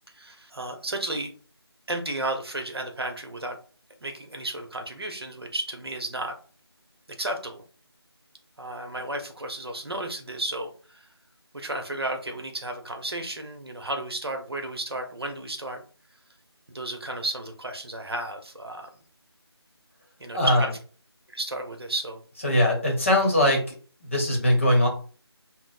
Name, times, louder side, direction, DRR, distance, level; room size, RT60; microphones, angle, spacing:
voice 1, 0.1-1.3 1.9-3.6 4.0-6.3 7.2-7.6 8.6-11.0 11.5-15.8 16.7-18.9 20.2-20.7 21.3-22.2, right 1 dB, 65° right, 4 dB, 0.9 m, -33 dB
voice 2, 20.3-20.7 22.4-23.7 24.0-24.9, left 1 dB, 30° left, -1 dB, 0.9 m, -21 dB
5.9 x 2.0 x 2.4 m, 0.40 s
figure-of-eight pair, 170°, 14 cm